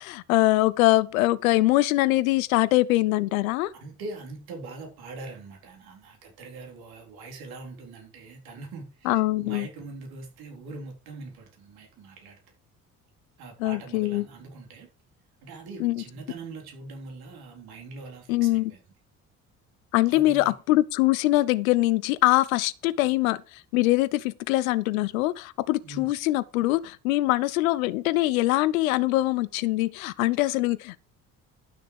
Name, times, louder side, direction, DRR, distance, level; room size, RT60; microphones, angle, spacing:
voice 1, 0.0-3.7 9.1-9.7 13.6-14.2 15.8-16.0 18.3-18.7 19.9-23.4 23.7-31.0, left 18 dB, 75° left, 0.8 m, -23 dB
voice 2, 3.8-12.4 13.4-14.9 15.4-18.8 20.1-20.5 25.8-26.1, right 3 dB, 60° right, 4.0 m, -42 dB
12.0 x 6.6 x 4.8 m
figure-of-eight pair, 50°, 42 cm